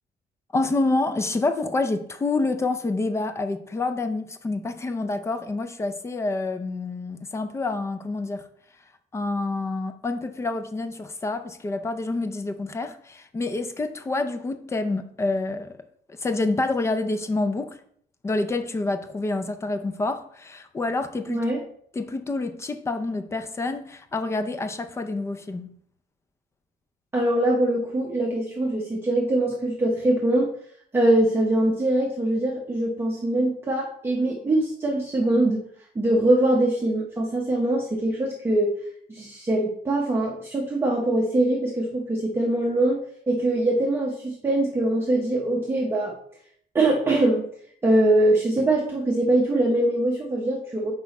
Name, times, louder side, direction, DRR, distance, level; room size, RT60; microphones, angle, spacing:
voice 1, 0.5-8.5 9.1-15.8 16.1-17.8 18.2-21.4 22.0-25.7, left 2 dB, 15° left, 0.4 m, -27 dB
voice 2, 21.3-21.6 27.1-30.5 30.9-38.7 39.1-43.0 43.3-46.1 46.7-47.5 47.8-50.9, right 1 dB, 15° right, 0.8 m, -23 dB
6.1 x 4.8 x 4.1 m
cardioid pair, 180°, 17 cm